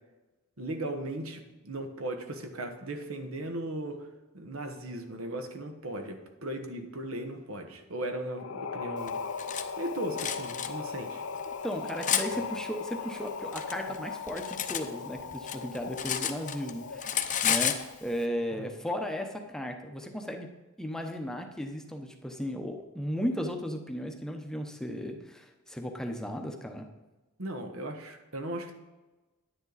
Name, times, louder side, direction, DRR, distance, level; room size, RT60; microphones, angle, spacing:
voice 1, 0.6-4.1 4.3-9.2 9.8-11.2 18.6-18.7 27.4-28.7, right 1 dB, 75° right, 6 dB, 1.2 m, -37 dB
sound 1, 8.3-18.1, left 5 dB, 85° left, 0.6 m, -39 dB
Cutlery silverware, 9.1-9.6 10.2-10.7 11.4-12.3 13.1-14.9 15.2-16.7 17.0-17.8, left 9 dB, 35° left, 0.7 m, -31 dB
voice 2, 11.6-17.1 17.4-20.5 20.8-26.9, equal, 5° left, 3 dB, 0.8 m, -35 dB
10.0 x 9.9 x 4.0 m, 1.2 s
head